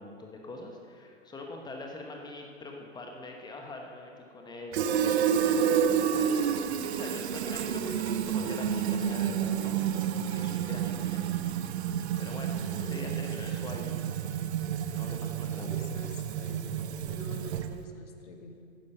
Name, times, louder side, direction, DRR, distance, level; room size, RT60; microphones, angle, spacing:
voice 1, 0.0-11.7 12.2-14.0 14.9-15.9, left 2 dB, 10° left, 1 dB, 1.0 m, -44 dB
Fill (with liquid), 4.7-17.8, right 8 dB, 60° right, 0.7 m, -30 dB
voice 2, 12.7-13.1 15.6-16.6 17.0-18.8, left 2 dB, 70° left, 4 dB, 1.7 m, -45 dB
9.7 x 9.3 x 6.6 m, 2.4 s
hypercardioid pair, 115°, 37 cm